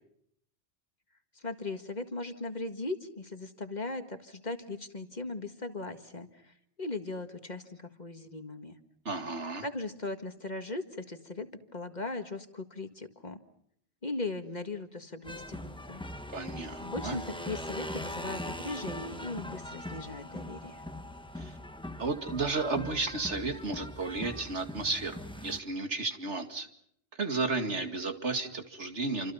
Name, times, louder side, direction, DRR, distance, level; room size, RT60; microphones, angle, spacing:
voice 1, 1.4-8.8 9.6-13.4 14.0-16.0 16.8-20.8, left 2 dB, 35° left, 8 dB, 1.9 m, -38 dB
voice 2, 9.1-9.6 16.3-17.2 21.4-21.6 22.0-26.7 27.1-29.3, right 3 dB, 70° right, 7 dB, 2.6 m, -33 dB
sound 1, 15.2-25.6, left 1 dB, 5° left, 1.3 m, -41 dB
28.5 x 26.5 x 5.6 m, 0.69 s
omnidirectional pair, 1.2 m